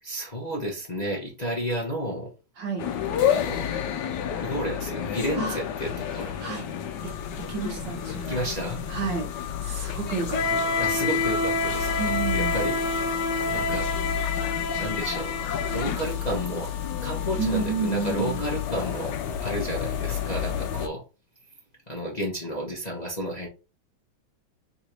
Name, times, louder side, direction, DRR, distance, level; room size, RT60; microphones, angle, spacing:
voice 1, 0.0-2.3 3.3-3.7 4.3-6.5 8.3-8.8 10.8-12.8 13.5-14.0 14.8-15.3 15.7-16.7 17.0-21.0 21.9-23.5, equal, 30° left, -3 dB, 0.7 m, -31 dB
voice 2, 2.6-2.9 5.3-5.6 6.4-6.7 7.0-8.4 8.9-9.3 9.6-10.7 12.0-12.6 17.4-18.4, right 5 dB, 65° right, 2 dB, 1.6 m, -31 dB
sound 1, 2.8-20.9, left 6 dB, 65° left, 1.2 m, -28 dB
4.0 x 2.6 x 4.4 m, 0.31 s
omnidirectional pair, 2.2 m